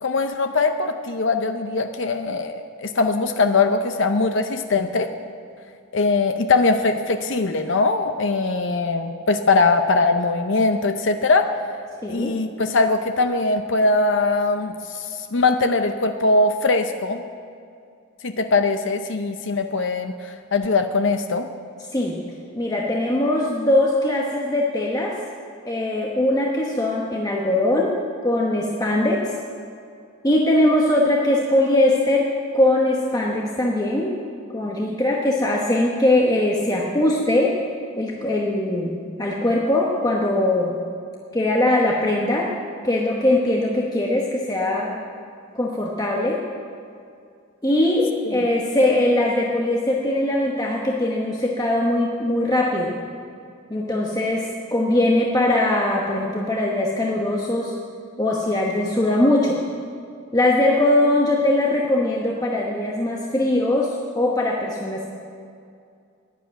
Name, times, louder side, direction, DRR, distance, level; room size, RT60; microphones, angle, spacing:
voice 1, 0.0-5.1 5.9-11.5 12.1-17.2 18.2-21.5, left 3 dB, 55° left, 7 dB, 0.6 m, -21 dB
voice 2, 12.0-12.3 21.9-22.2 22.5-25.1 25.7-27.9 28.2-29.2 30.2-32.3 32.5-34.1 34.5-37.5 38.0-40.8 41.3-42.5 42.8-45.0 45.5-46.4 47.6-53.0 53.7-57.7 58.2-59.6 60.3-65.1, left 1 dB, 15° left, -2 dB, 1.0 m, -21 dB
11.5 x 10.5 x 9.0 m, 2.4 s
head